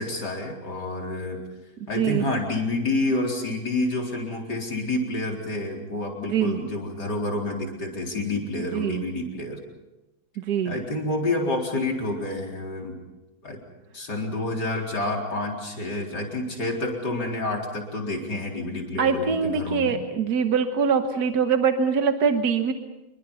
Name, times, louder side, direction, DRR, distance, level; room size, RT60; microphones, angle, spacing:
voice 1, 0.0-1.4 1.9-9.6 10.6-13.0 13.4-13.6 13.9-20.0, left 2 dB, 60° left, 0 dB, 4.7 m, -28 dB
voice 2, 8.7-9.0 10.4-10.8 19.0-22.7, right 6 dB, 60° right, 6 dB, 1.6 m, -23 dB
27.5 x 23.5 x 5.6 m, 1.0 s
omnidirectional pair, 2.1 m